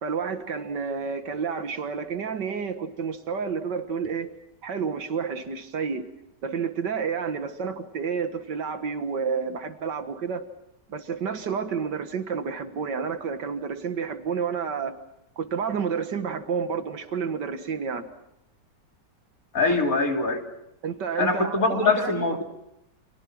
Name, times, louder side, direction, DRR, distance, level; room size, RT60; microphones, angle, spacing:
voice 1, 0.0-4.3 4.6-6.1 6.4-10.5 10.9-15.0 15.4-18.1 19.7-19.9 20.8-22.3, right 6 dB, 85° right, 8 dB, 2.1 m, -30 dB
voice 2, 19.5-20.4 21.2-22.4, left 3 dB, 55° left, 2 dB, 3.5 m, -23 dB
29.5 x 26.5 x 6.1 m, 0.82 s
omnidirectional pair, 1.8 m